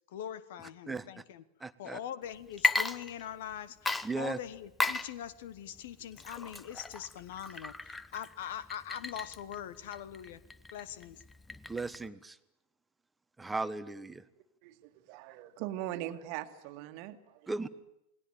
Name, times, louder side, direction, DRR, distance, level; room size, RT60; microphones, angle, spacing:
voice 1, 0.1-1.4 1.8-10.4 10.7-11.2, left 10 dB, 55° left, 1.3 m, -42 dB
voice 2, 1.6-2.0 4.0-4.4 11.7-12.4 13.4-14.2 17.5-17.7, right 3 dB, 10° right, 1.3 m, -36 dB
Water / Liquid, 2.5-3.5 3.9-12.1, left 3 dB, 10° left, 1.0 m, -35 dB
voice 3, 14.6-17.6, right 13 dB, 45° right, 1.8 m, -41 dB
28.5 x 20.0 x 9.1 m
figure-of-eight pair, 90°, 0 cm